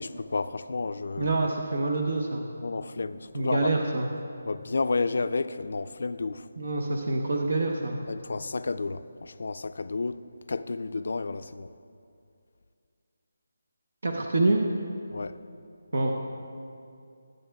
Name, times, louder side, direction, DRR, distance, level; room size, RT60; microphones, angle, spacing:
voice 1, 0.0-1.3 2.6-3.7 4.5-6.5 8.1-10.2 10.5-11.7 15.1-15.4, left 3 dB, 65° left, 13 dB, 0.3 m, -31 dB
voice 2, 1.2-2.5 3.3-4.1 6.6-8.0 14.0-14.6 15.9-16.1, right 2 dB, 70° right, 2 dB, 0.9 m, -26 dB
18.0 x 8.9 x 2.3 m, 2.5 s
figure-of-eight pair, 165°, 0 cm